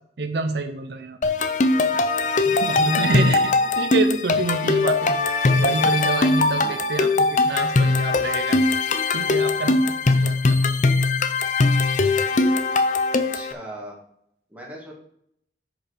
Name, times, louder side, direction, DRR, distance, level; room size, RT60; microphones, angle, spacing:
voice 1, 0.2-1.2 1.9-5.1 5.4-8.6 9.1-10.6 10.8-11.0, right 3 dB, 70° right, 8 dB, 0.6 m, -28 dB
sound 1, 1.2-13.5, left 3 dB, 45° left, 0.6 m, -20 dB
voice 2, 3.1-3.4 13.1-14.0 14.5-14.9, right 1 dB, 10° right, -2 dB, 1.9 m, -40 dB
8.7 x 5.2 x 5.1 m, 0.72 s
head